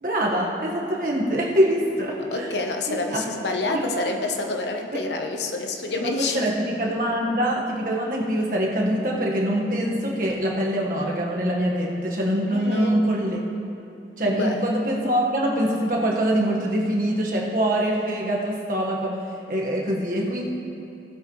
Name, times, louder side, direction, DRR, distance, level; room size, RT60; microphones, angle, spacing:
voice 1, 0.0-2.5 2.9-3.3 3.7-4.1 4.9-5.0 5.9-13.4 14.2-19.2 19.5-20.5, equal, 50° right, -2 dB, 1.5 m, -24 dB
voice 2, 2.3-6.5 12.5-13.0 14.3-14.5, left 2 dB, 80° left, 3 dB, 1.0 m, -28 dB
18.0 x 8.0 x 3.2 m, 2.7 s
head